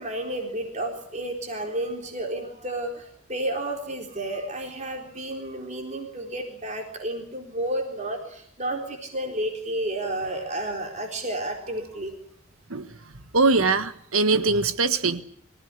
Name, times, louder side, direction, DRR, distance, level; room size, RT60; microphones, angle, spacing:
voice 1, 0.0-12.1, right 1 dB, 35° right, 2 dB, 4.1 m, -31 dB
voice 2, 13.3-15.2, right 3 dB, 80° right, 11 dB, 1.5 m, -22 dB
25.0 x 16.0 x 9.8 m, 0.67 s
head